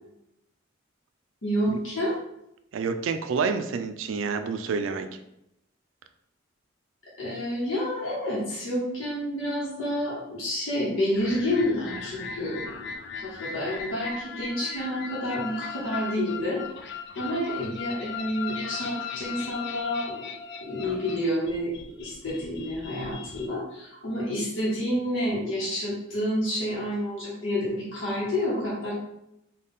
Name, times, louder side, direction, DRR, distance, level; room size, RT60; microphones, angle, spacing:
voice 1, 1.4-2.1 7.2-12.9 13.2-16.6 17.1-20.2 20.6-21.7 22.0-28.9, equal, 85° left, -7 dB, 1.0 m, -29 dB
voice 2, 2.7-5.1, right 5 dB, 90° right, 8 dB, 0.4 m, -28 dB
sound 1, 11.1-23.5, left 6 dB, 60° left, 0.4 m, -38 dB
3.8 x 2.3 x 3.6 m, 0.83 s
head